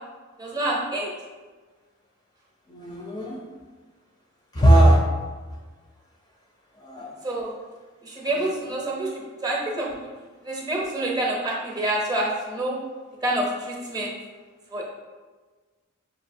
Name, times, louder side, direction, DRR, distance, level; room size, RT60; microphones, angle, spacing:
voice 1, 0.4-1.1 7.2-7.5 8.0-9.1 9.4-10.1 10.4-12.7 13.2-14.1 14.7-14.8, right 1 dB, 20° right, -2 dB, 0.7 m, -27 dB
voice 2, 2.7-3.4 4.5-5.0 6.8-7.1, right 1 dB, 20° left, -2 dB, 0.4 m, -18 dB
5.4 x 2.7 x 2.6 m, 1.3 s
head